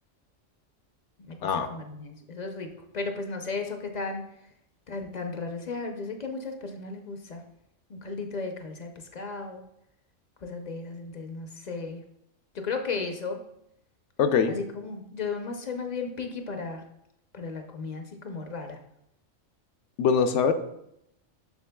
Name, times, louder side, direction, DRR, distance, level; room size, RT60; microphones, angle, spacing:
voice 1, 1.3-4.2 4.9-7.4 7.9-9.6 10.4-12.0 12.5-13.4 14.5-16.8 17.3-18.8, left 4 dB, 45° left, 4 dB, 0.6 m, -35 dB
voice 2, 14.2-14.6 20.0-20.5, left 6 dB, 70° left, 8 dB, 0.9 m, -22 dB
7.0 x 6.3 x 2.2 m, 0.77 s
omnidirectional pair, 1.3 m